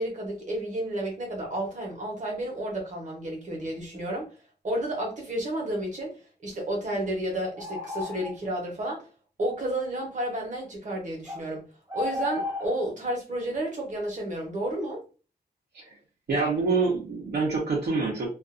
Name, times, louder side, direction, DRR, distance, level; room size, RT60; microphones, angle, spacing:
voice 1, 0.0-4.3 4.6-9.1 9.4-11.7 11.9-15.0, right 1 dB, 45° right, 1.0 m, -31 dB
sound 1, 7.6-8.5 11.3-11.4 11.9-12.8, left 3 dB, 15° right, 0.7 m, -33 dB
voice 2, 16.3-18.3, right 4 dB, 70° right, 0.9 m, -26 dB
2.5 x 2.4 x 2.5 m
wide cardioid pair, 160°, 17 cm